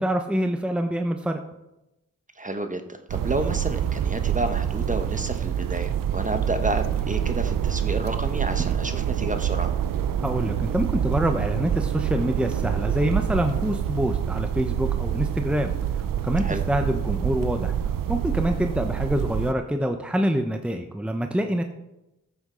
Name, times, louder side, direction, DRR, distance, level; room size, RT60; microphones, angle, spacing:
voice 1, 0.0-1.4 10.2-15.7 16.2-17.8 18.1-21.6, equal, 5° right, 5 dB, 0.9 m, -26 dB
voice 2, 2.4-9.7 16.4-16.6, right 2 dB, 25° right, 7 dB, 1.2 m, -30 dB
sound 1, 3.1-19.5, right 9 dB, 90° right, 0.6 m, -26 dB
14.0 x 8.1 x 3.9 m, 0.92 s
cardioid pair, 50°, 32 cm